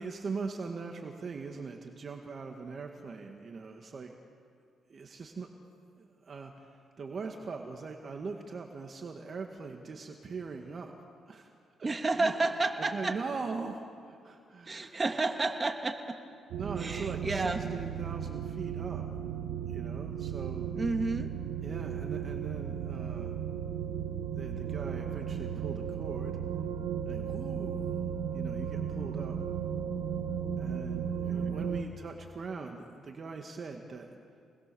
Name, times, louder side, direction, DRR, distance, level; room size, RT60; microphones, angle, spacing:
voice 1, 0.0-4.1 4.9-5.5 6.0-10.9 11.3-11.5 11.8-12.3 12.8-15.0 16.5-19.0 19.7-20.7 21.6-23.4 24.3-26.4 27.1-28.0 28.3-29.4 30.6-34.2, right 4 dB, 45° right, 3 dB, 2.1 m, -41 dB
voice 2, 11.8-13.1 14.7-16.2 16.8-17.6 20.8-21.3 31.2-31.7, right 3 dB, 25° right, 4 dB, 2.5 m, -31 dB
sound 1, 16.5-31.8, right 8 dB, 85° right, 1.5 m, -35 dB
28.0 x 20.5 x 7.2 m, 2.2 s
cardioid pair, 90°, 0 cm